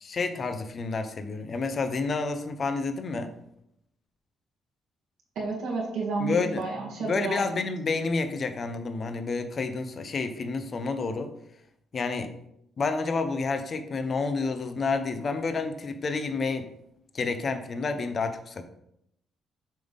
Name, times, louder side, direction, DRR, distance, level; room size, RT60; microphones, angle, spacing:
voice 1, 0.0-3.3 6.2-6.6 7.0-11.3 11.9-12.3 12.8-16.7 17.1-18.6, left 4 dB, 45° left, 8 dB, 0.8 m, -29 dB
voice 2, 5.4-7.7, right 3 dB, 80° right, -3 dB, 2.0 m, -31 dB
7.6 x 3.5 x 5.4 m, 0.76 s
cardioid pair, 90°, 0 cm